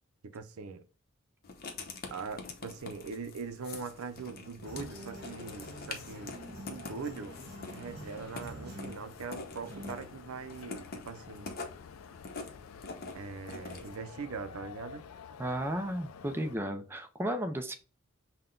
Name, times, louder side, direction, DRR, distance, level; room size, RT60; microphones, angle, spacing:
voice 1, 0.2-0.8 2.1-6.4 6.6-7.4 7.7-11.6 13.1-15.1, right 5 dB, 85° right, 0.5 m, -42 dB
Writing, 1.4-14.0, left 3 dB, 45° left, 0.7 m, -46 dB
sound 1, 4.6-16.6, left 6 dB, 80° left, 0.4 m, -50 dB
sound 2, 4.6-9.9, right 1 dB, 50° right, 1.6 m, -48 dB
voice 2, 15.4-17.7, right 1 dB, 10° right, 0.4 m, -34 dB
5.7 x 2.2 x 3.7 m
head